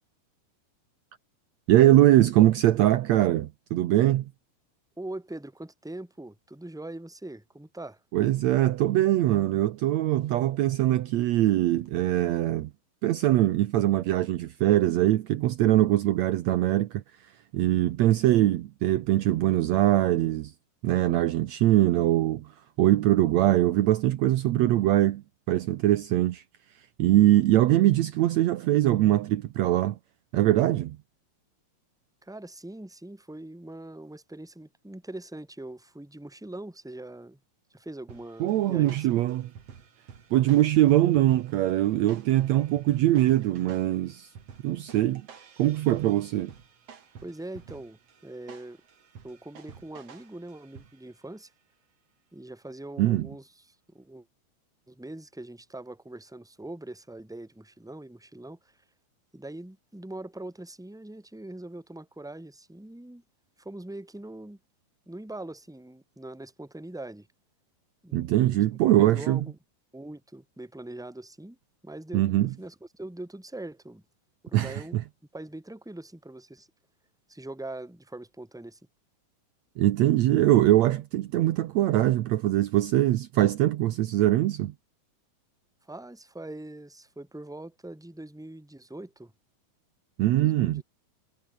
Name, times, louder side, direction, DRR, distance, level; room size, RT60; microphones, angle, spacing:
voice 1, 1.7-4.3 8.1-12.7 13.0-17.0 17.5-20.5 20.8-22.5 22.8-25.2 25.5-26.4 27.0-30.0 30.3-31.0 38.4-39.5 40.3-44.3 44.6-45.2 45.6-46.5 53.0-53.3 68.1-69.5 72.1-72.5 74.5-75.0 79.8-84.7 90.2-90.8, right 14 dB, 85° right, 1.5 m, -22 dB
voice 2, 5.0-8.0 32.2-37.4 37.7-39.2 47.2-48.8 49.2-51.5 52.3-54.3 54.9-58.8 59.3-63.2 63.6-64.6 65.1-67.3 68.0-68.6 68.8-69.5 69.9-71.6 71.8-74.0 74.4-75.0 75.3-76.7 77.3-78.8 85.8-89.3 90.3-90.8, right 1 dB, ahead, 2.5 m, -42 dB
sound 1, 38.1-51.2, right 7 dB, 45° right, 3.2 m, -51 dB
omnidirectional pair, 4.3 m